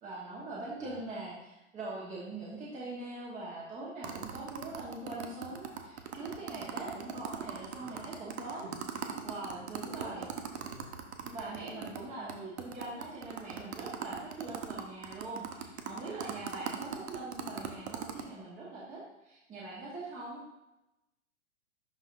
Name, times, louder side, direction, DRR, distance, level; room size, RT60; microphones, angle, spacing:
voice 1, 0.0-8.6 9.2-10.3 11.2-20.4, right 2 dB, 20° right, -5 dB, 1.2 m, -42 dB
sound 1, 4.0-12.0 12.3-12.4 12.6-18.2, right 8 dB, 60° right, 1.0 m, -39 dB
voice 2, 7.7-8.0 8.5-9.2 9.5-10.3 10.7-10.9 11.5-12.1 16.1-16.5, right 1 dB, 40° right, -1 dB, 2.3 m, -50 dB
11.5 x 4.0 x 2.6 m, 0.94 s
figure-of-eight pair, 115°, 37 cm